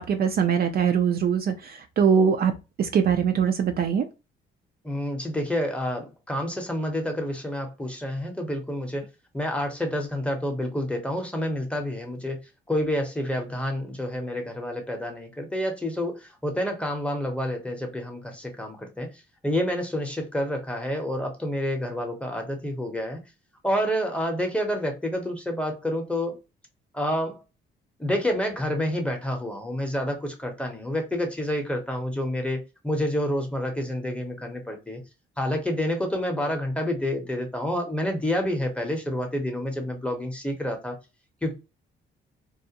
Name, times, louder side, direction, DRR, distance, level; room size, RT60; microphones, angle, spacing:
voice 1, 0.0-1.5 2.0-2.5 2.8-4.1, right 7 dB, 50° right, 0.4 m, -22 dB
voice 2, 4.8-9.1 9.3-12.4 12.7-19.1 19.4-23.2 23.6-26.4 26.9-27.4 28.0-35.0 35.4-41.0 41.4-41.5, left 1 dB, 5° left, 0.8 m, -28 dB
2.3 x 2.1 x 2.8 m
cardioid pair, 90°, 20 cm